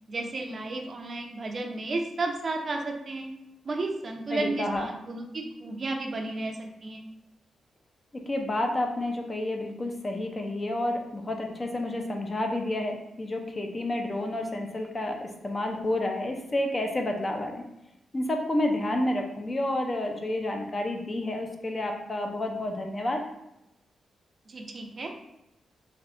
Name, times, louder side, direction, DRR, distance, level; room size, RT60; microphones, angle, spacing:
voice 1, 0.1-3.3 3.6-7.0 24.5-25.1, right 2 dB, 40° right, 3 dB, 0.4 m, -33 dB
voice 2, 4.3-4.9 8.3-17.6 18.1-23.2, left 1 dB, 30° left, 2 dB, 0.4 m, -30 dB
3.4 x 2.6 x 2.4 m, 0.89 s
cardioid pair, 110°, 0 cm